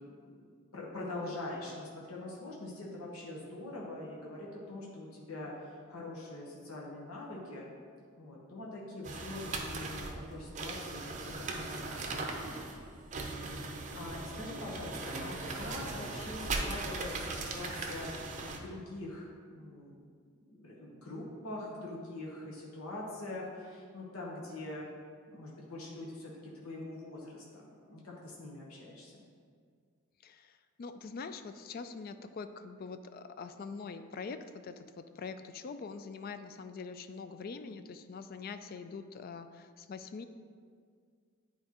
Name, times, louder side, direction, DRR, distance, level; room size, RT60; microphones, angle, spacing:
voice 1, 0.0-7.7 8.2-12.2 13.9-20.0 20.4-24.9 25.3-29.2, left 2 dB, 85° left, -4 dB, 1.0 m, -44 dB
sound 1, 9.0-18.6, right 3 dB, 35° right, 0.6 m, -39 dB
voice 2, 30.2-40.2, left 4 dB, 45° left, 10 dB, 0.3 m, -44 dB
9.3 x 4.3 x 2.9 m, 2.1 s
head